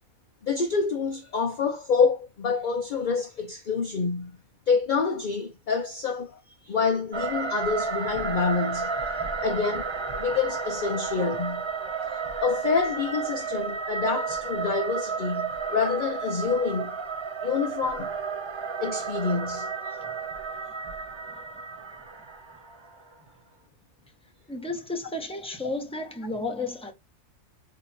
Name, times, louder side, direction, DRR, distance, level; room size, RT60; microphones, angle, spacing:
voice 1, 0.4-4.4 4.7-6.4 6.6-9.0 9.4-11.7 12.1-17.0 17.4-18.2 18.8-19.9, left 5 dB, 50° left, 0.6 m, -27 dB
sound 1, 7.1-23.1, right 5 dB, 50° right, 0.3 m, -32 dB
voice 2, 24.5-26.9, left 2 dB, 5° left, 1.0 m, -33 dB
4.2 x 2.7 x 4.3 m
omnidirectional pair, 1.4 m